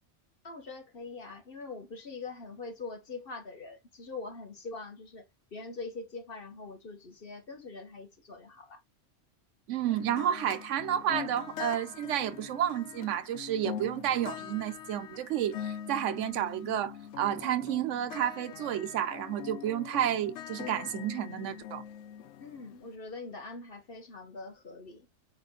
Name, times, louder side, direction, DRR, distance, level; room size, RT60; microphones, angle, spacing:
voice 1, 0.4-5.2 5.5-8.8 22.4-25.1, left 3 dB, 50° left, 1.3 m, -43 dB
voice 2, 9.7-21.8, right 11 dB, 90° right, 1.0 m, -31 dB
sound 1, 9.9-22.9, left 10 dB, 75° left, 0.9 m, -43 dB
4.8 x 3.0 x 3.7 m
omnidirectional pair, 1.2 m